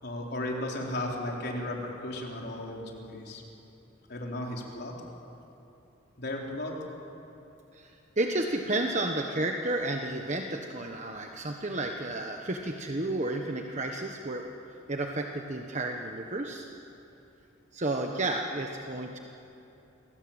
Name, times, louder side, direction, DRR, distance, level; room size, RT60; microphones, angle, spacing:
voice 1, 0.0-3.4 4.1-4.9 6.2-6.7, left 1 dB, 50° left, -1 dB, 4.3 m, -35 dB
voice 2, 8.2-14.5 14.9-16.7 17.7-19.2, right 2 dB, 35° right, 3 dB, 1.3 m, -31 dB
28.5 x 20.5 x 9.0 m, 2.9 s
head